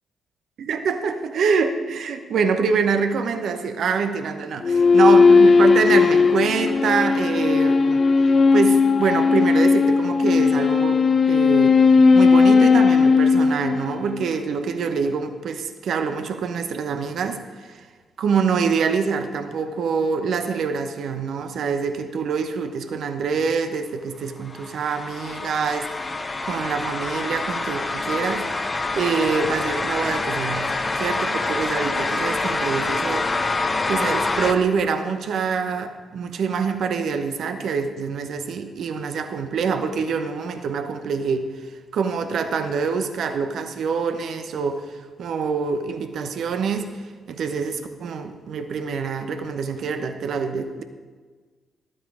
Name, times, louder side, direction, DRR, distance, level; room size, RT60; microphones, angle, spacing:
voice 1, 0.6-8.0 8.5-11.8 12.1-17.9 18.2-33.6 33.9-50.8, right 5 dB, 70° right, 7 dB, 0.9 m, -25 dB
sound 1, 4.6-14.3, left 4 dB, 50° left, 0.4 m, -16 dB
sound 2, 24.5-34.5, left 3 dB, 35° left, 1.0 m, -26 dB
12.0 x 8.9 x 4.9 m, 1.5 s
hypercardioid pair, 45°, 0 cm